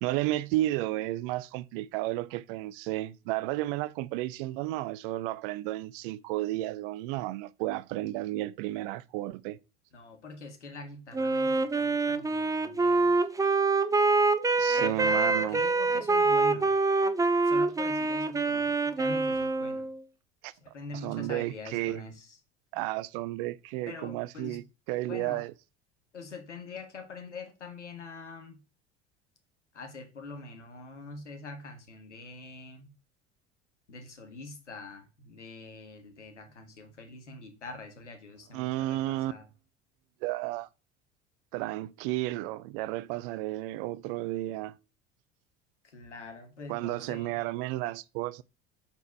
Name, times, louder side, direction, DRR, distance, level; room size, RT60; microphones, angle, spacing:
voice 1, 0.0-9.6 14.6-15.6 20.4-20.5 21.0-22.0 22.7-25.5 38.5-39.3 40.2-40.7 41.5-44.8 46.7-48.4, right 16 dB, 50° right, 0.5 m, -32 dB
voice 2, 9.9-13.3 14.8-16.7 17.4-19.9 20.5-22.4 23.9-24.6 25.1-25.4 26.1-28.6 29.7-32.9 33.9-39.4 45.9-47.4, left 3 dB, 80° left, 1.6 m, -44 dB
Wind instrument woodwind instrument, 11.1-20.0, right 3 dB, 10° right, 0.6 m, -25 dB
7.8 x 4.6 x 4.6 m
figure-of-eight pair, 65°, 35 cm